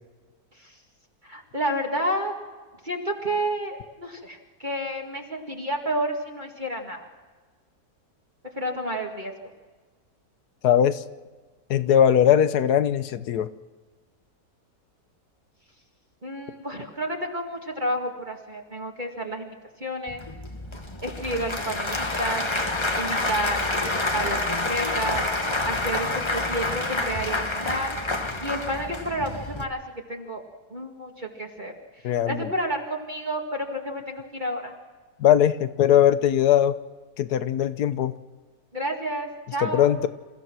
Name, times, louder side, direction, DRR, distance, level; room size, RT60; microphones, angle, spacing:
voice 1, 1.2-2.4 2.8-7.1 8.6-9.3 16.2-19.6 19.8-20.2 21.0-22.5 23.0-23.7 24.1-25.2 25.6-28.0 28.4-29.8 30.1-30.4 30.7-31.7 32.3-34.8 38.7-39.9, right 1 dB, 30° right, 0 dB, 2.2 m, -30 dB
voice 2, 10.6-11.0 11.7-13.5 32.0-32.5 35.2-36.8 37.2-38.2 39.6-40.1, left 10 dB, 80° left, 13 dB, 1.4 m, -20 dB
Applause / Crowd, 20.1-29.6, left 2 dB, 20° left, 1.2 m, -28 dB
28.0 x 15.5 x 6.1 m, 1.4 s
omnidirectional pair, 1.7 m